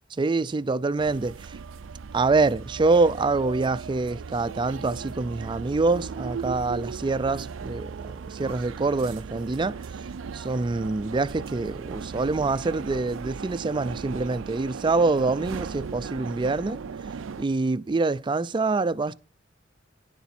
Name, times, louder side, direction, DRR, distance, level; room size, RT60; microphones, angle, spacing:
voice 1, 0.2-1.6 2.1-9.8 10.3-16.8 17.4-19.1, right 3 dB, 25° right, 0.4 m, -25 dB
sound 1, 1.0-17.5, right 5 dB, 85° right, 0.4 m, -37 dB
10.5 x 7.1 x 4.2 m
head